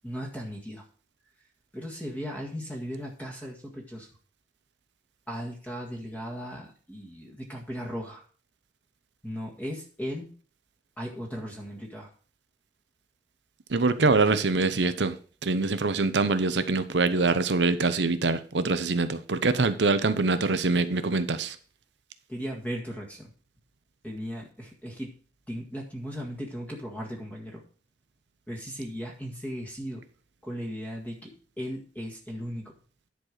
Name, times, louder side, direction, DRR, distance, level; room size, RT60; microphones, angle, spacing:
voice 1, 0.0-0.9 1.7-4.1 5.3-8.2 9.2-10.3 11.0-12.1 22.3-23.3 24.0-25.1 25.5-27.6 28.5-30.0 30.4-32.8, equal, 10° left, -1 dB, 1.8 m, -37 dB
voice 2, 13.7-15.2 15.4-21.6, right 3 dB, 80° right, 12 dB, 0.8 m, -24 dB
10.5 x 4.6 x 6.5 m, 0.41 s
head